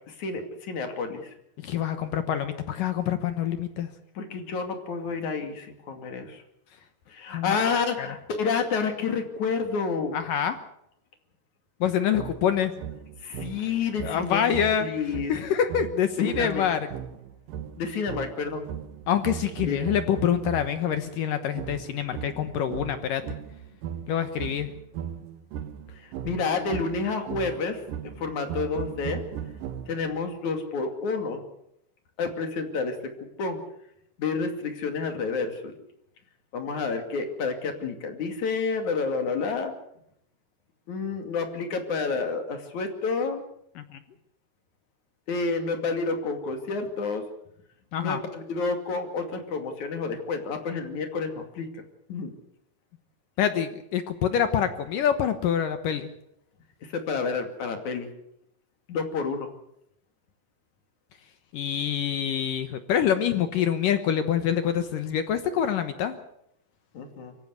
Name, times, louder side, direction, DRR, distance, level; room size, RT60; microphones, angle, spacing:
voice 1, 0.1-1.3 4.2-6.4 7.1-10.2 13.2-14.4 14.8-15.4 16.2-16.7 17.8-18.7 19.7-19.9 26.0-29.2 29.9-31.4 32.2-33.6 34.2-35.8 36.5-39.7 40.9-43.4 45.3-47.2 48.0-51.8 52.1-52.3 56.8-58.1 58.9-59.5 66.9-67.3, left 4 dB, 50° left, 5 dB, 3.4 m, -29 dB
voice 2, 1.6-3.9 7.3-7.6 8.0-8.1 10.1-10.6 11.8-12.7 14.0-16.8 19.1-23.2 24.1-24.7 43.8-44.0 47.9-48.2 53.4-56.1 61.5-66.1, left 9 dB, 70° left, 9 dB, 2.2 m, -26 dB
sound 1, 12.1-20.9 21.6-30.2, right 9 dB, 65° right, 2.3 m, -38 dB
24.5 x 16.0 x 8.1 m, 0.77 s
omnidirectional pair, 5.0 m